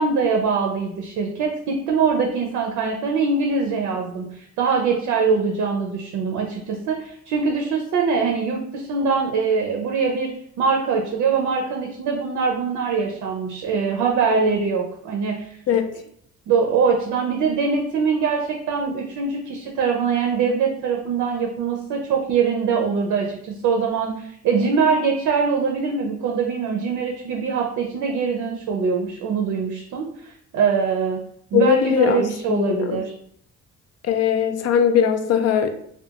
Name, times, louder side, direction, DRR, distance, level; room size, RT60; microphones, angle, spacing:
voice 1, 0.0-10.3 10.6-15.6 16.5-31.2 31.5-33.1, right 5 dB, 80° right, 1 dB, 0.5 m, -23 dB
voice 2, 31.5-33.0 34.1-35.7, left 8 dB, 55° left, 8 dB, 0.4 m, -20 dB
2.4 x 2.2 x 2.7 m, 0.67 s
cardioid pair, 90°, 30 cm